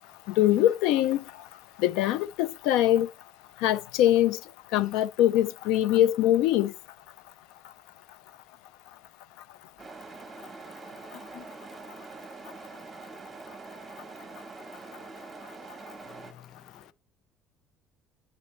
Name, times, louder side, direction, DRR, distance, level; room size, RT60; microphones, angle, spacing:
voice 1, 0.3-3.1 3.6-6.7 11.1-11.5, left 13 dB, 90° left, 0.4 m, -24 dB
sound 1, 9.8-16.3, right 4 dB, 20° right, 0.9 m, -44 dB
voice 2, 16.0-16.9, left 8 dB, 25° left, 0.4 m, -53 dB
10.0 x 4.1 x 3.1 m
cardioid pair, 155°, 0 cm